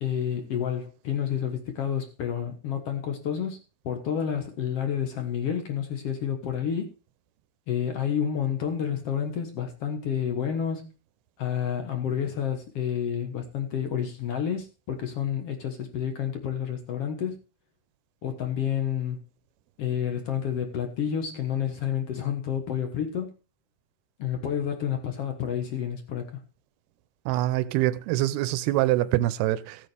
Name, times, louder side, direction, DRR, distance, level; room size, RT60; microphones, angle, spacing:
voice 1, 0.0-3.6 3.8-6.9 7.7-10.9 11.4-17.4 18.2-19.2 19.8-23.3 24.2-26.4, left 8 dB, 60° left, 1.6 m, -29 dB
voice 2, 27.3-29.8, right 15 dB, 85° right, 2.7 m, -24 dB
16.0 x 9.1 x 3.3 m
omnidirectional pair, 4.4 m